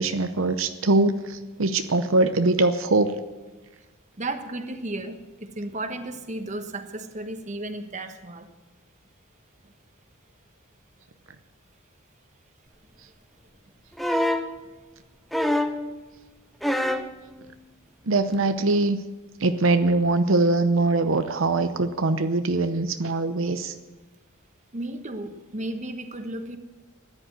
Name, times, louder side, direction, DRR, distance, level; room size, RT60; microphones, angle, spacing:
voice 1, 0.0-3.1 18.1-19.0 19.4-23.7, right 2 dB, 80° right, 9 dB, 0.8 m, -22 dB
voice 2, 4.2-8.5 24.7-26.6, right 2 dB, 35° right, 7 dB, 1.2 m, -34 dB
sound 1, 14.0-14.5 15.3-15.9 16.6-17.1 18.3-18.4, left 1 dB, ahead, 0.8 m, -24 dB
14.0 x 10.5 x 7.8 m, 1.2 s
head